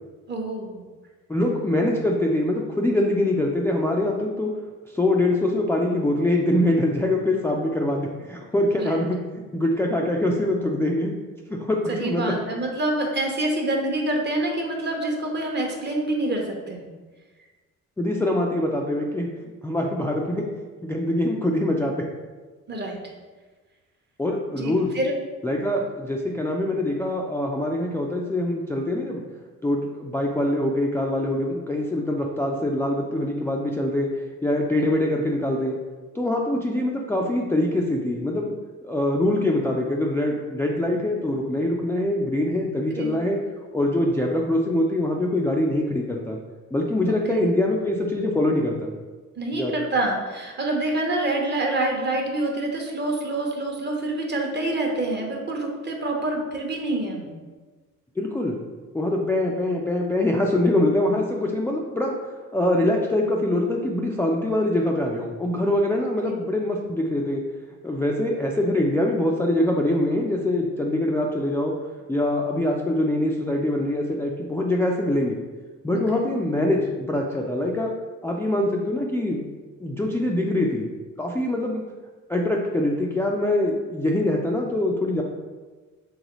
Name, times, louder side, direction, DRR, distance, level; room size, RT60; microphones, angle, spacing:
voice 1, 0.3-0.8 8.8-9.0 11.9-16.8 22.7-23.0 24.5-25.2 42.9-43.1 47.3-47.5 49.4-57.3 66.2-66.4 76.1-76.3, right 2 dB, 35° right, 1 dB, 0.8 m, -26 dB
voice 2, 1.3-4.5 4.9-11.1 11.6-12.3 18.0-19.3 19.6-20.5 20.8-22.0 24.2-24.9 25.4-29.2 29.6-35.8 36.1-38.5 38.8-43.4 43.7-46.4 46.7-48.9 49.6-49.7 58.2-58.6 58.9-62.1 62.5-67.4 67.8-71.7 72.1-75.4 75.8-77.9 78.2-79.5 79.8-80.9 81.2-81.8 82.3-85.2, left 1 dB, 10° left, -1 dB, 0.3 m, -24 dB
4.0 x 3.1 x 3.0 m, 1.3 s
cardioid pair, 90°, 30 cm